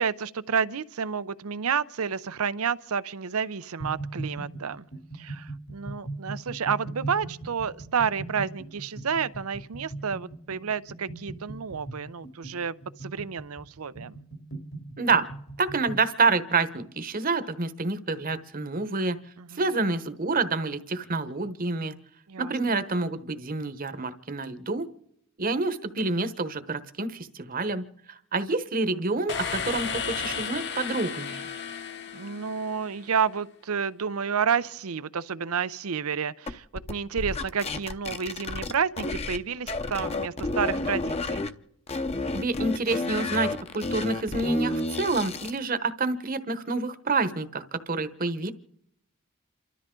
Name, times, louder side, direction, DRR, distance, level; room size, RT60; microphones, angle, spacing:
voice 1, 0.0-4.8 5.2-14.2 19.4-19.6 22.3-22.8 28.9-29.2 32.1-41.5, right 6 dB, 90° right, 0.6 m, -30 dB
sound 1, 3.8-16.1, right 2 dB, 80° left, 3.2 m, -39 dB
voice 2, 15.6-19.2 19.5-21.9 22.4-24.9 25.4-31.5 42.3-48.5, right 3 dB, 40° right, 1.1 m, -28 dB
sound 2, 29.3-33.1, left 6 dB, 55° left, 1.2 m, -34 dB
sound 3, 36.5-39.4 39.7-41.5 41.9-45.6, left 2 dB, 30° left, 0.7 m, -31 dB
28.5 x 13.0 x 3.8 m
head